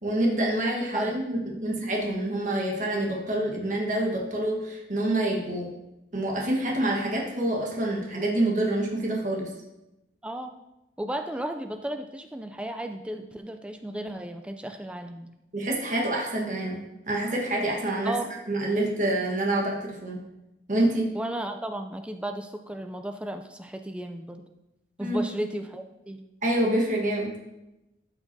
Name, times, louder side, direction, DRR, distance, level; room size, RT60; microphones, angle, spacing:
voice 1, 0.0-5.7 6.1-9.5 15.5-18.2 18.5-20.3 20.7-21.1 25.0-25.3 26.4-27.4, right 1 dB, 45° right, -1 dB, 1.4 m, -27 dB
voice 2, 10.2-10.6 11.0-15.3 18.0-18.3 21.1-24.4 25.0-26.2, right 1 dB, 5° right, 6 dB, 0.3 m, -34 dB
12.5 x 5.8 x 2.7 m, 0.93 s
head